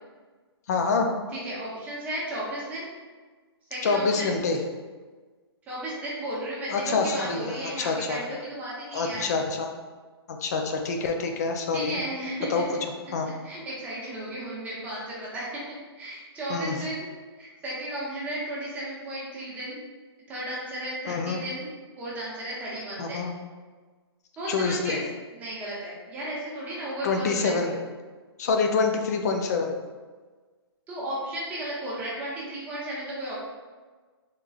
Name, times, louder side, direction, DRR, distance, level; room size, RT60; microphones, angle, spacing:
voice 1, 0.7-1.1 3.8-4.6 6.7-8.2 8.9-9.7 10.3-12.0 12.5-12.6 13.1-13.3 16.5-16.8 21.1-21.4 23.0-23.3 24.5-25.0 27.0-27.7 28.4-29.7, left 4 dB, 40° left, 4 dB, 0.4 m, -26 dB
voice 2, 1.3-2.9 3.7-4.4 5.7-9.2 11.7-12.6 13.4-15.5 16.0-17.1 17.4-19.8 20.3-21.7 22.0-23.3 24.4-25.1 25.3-27.8 30.9-33.4, right 1 dB, 10° right, -7 dB, 0.7 m, -34 dB
3.7 x 2.8 x 2.3 m, 1.4 s
hypercardioid pair, 160°, 14 cm